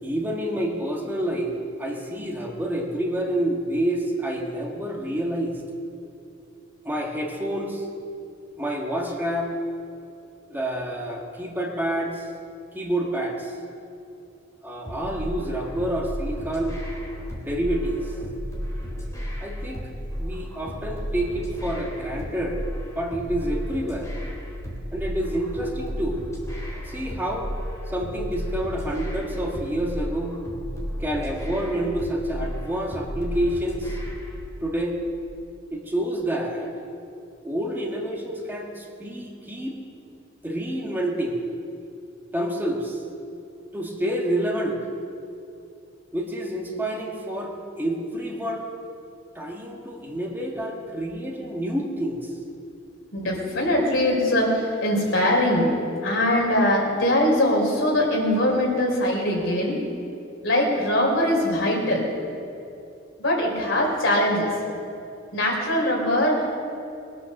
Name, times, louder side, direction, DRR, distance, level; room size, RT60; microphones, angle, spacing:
voice 1, 0.0-5.6 6.8-7.8 8.6-9.5 10.5-12.3 12.7-13.6 14.6-16.7 17.4-18.1 19.4-19.8 20.2-22.7 22.9-24.1 24.9-26.2 26.8-27.5 27.9-30.3 31.0-34.0 34.6-35.0 35.7-36.7 37.4-39.7 40.4-41.4 42.3-43.0 43.7-44.8 46.1-48.7 49.3-52.3, right 1 dB, 10° right, -1 dB, 1.5 m, -28 dB
sound 1, 14.8-34.4, equal, 15° left, 3.1 m, -33 dB
voice 2, 53.1-55.7 56.0-59.8 60.4-62.0 63.2-64.5 65.3-66.5, left 1 dB, 70° left, -1 dB, 3.7 m, -22 dB
20.5 x 8.7 x 6.6 m, 2.7 s
head